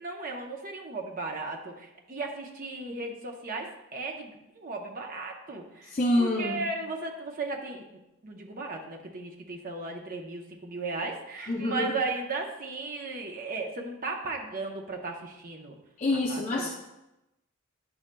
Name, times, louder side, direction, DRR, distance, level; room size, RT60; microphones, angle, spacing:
voice 1, 0.0-15.8 16.1-16.7, right 3 dB, 40° right, 1 dB, 0.8 m, -36 dB
voice 2, 5.9-6.6 11.4-11.9 16.0-16.7, left 1 dB, 35° left, -1 dB, 0.5 m, -26 dB
9.6 x 6.2 x 2.2 m, 0.93 s
head